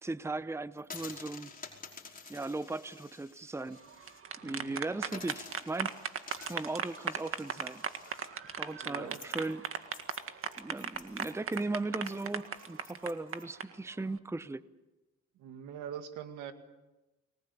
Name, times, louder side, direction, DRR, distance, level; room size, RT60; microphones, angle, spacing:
voice 1, 0.0-1.5 2.3-3.8 4.4-6.0 6.5-7.8 8.6-9.7 10.6-14.6, right 2 dB, 10° right, 16 dB, 0.8 m, -37 dB
sound 1, 0.8-4.2 4.5-4.6 5.1-13.4, left 4 dB, 30° left, 5.2 m, -50 dB
sound 2, 3.9-13.6, right 6 dB, 45° right, 1.9 m, -37 dB
voice 2, 4.4-4.8 8.8-9.2 15.4-16.5, right 9 dB, 90° right, 8 dB, 2.3 m, -43 dB
29.5 x 20.0 x 8.5 m, 1.1 s
cardioid pair, 90°, 30 cm